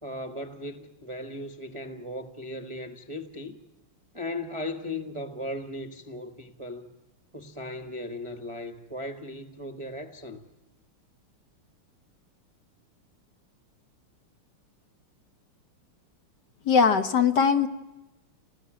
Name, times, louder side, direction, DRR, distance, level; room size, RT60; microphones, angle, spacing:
voice 1, 0.0-3.6 4.1-6.9 7.3-10.5, left 1 dB, 20° right, 0.9 m, -37 dB
voice 2, 16.7-17.7, left 6 dB, 55° left, 1.6 m, -20 dB
29.5 x 19.5 x 8.8 m
omnidirectional pair, 2.4 m